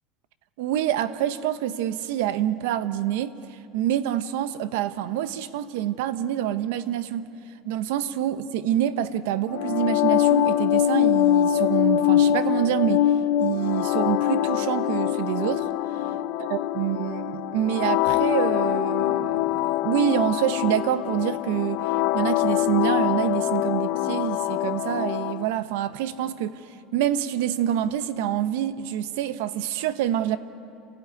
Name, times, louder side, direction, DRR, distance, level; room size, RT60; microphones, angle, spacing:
voice 1, 0.6-7.3 7.6-13.1 13.4-15.7 16.4-21.9 22.1-26.6 26.9-30.4, right 11 dB, 80° right, 0.9 m, -26 dB
sound 1, 9.5-25.5, left 12 dB, 60° left, 0.6 m, -24 dB
28.0 x 15.0 x 9.5 m
cardioid pair, 170°, 0 cm